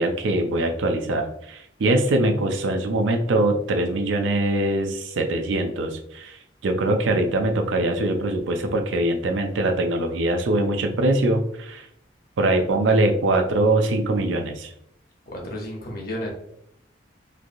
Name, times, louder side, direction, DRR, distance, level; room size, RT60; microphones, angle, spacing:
voice 1, 0.0-6.4 6.6-11.9 12.4-14.7, right 2 dB, 85° right, 5 dB, 0.4 m, -22 dB
voice 2, 15.3-16.3, left 1 dB, 50° left, -1 dB, 0.8 m, -32 dB
3.2 x 2.5 x 2.5 m, 0.74 s
head